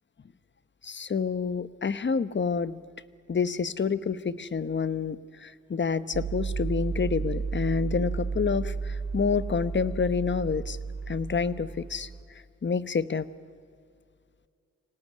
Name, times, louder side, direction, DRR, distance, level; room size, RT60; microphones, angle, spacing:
voice 1, 0.8-2.8 3.3-10.8 11.1-12.1 12.6-13.3, left 5 dB, 40° left, 15 dB, 1.0 m, -28 dB
sound 1, 6.1-12.2, right 5 dB, 65° right, 2.7 m, -33 dB
25.5 x 18.0 x 9.6 m, 2.3 s
cardioid pair, 75°, 29 cm